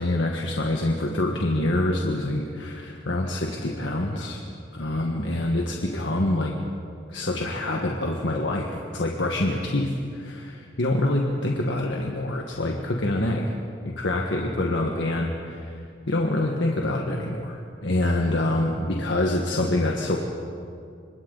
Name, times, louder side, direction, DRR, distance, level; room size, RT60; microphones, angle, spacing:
voice 1, 0.0-4.4 4.7-6.5 7.1-13.5 13.8-20.2, left 1 dB, 75° left, 0 dB, 1.6 m, -26 dB
29.5 x 26.0 x 4.1 m, 2.4 s
head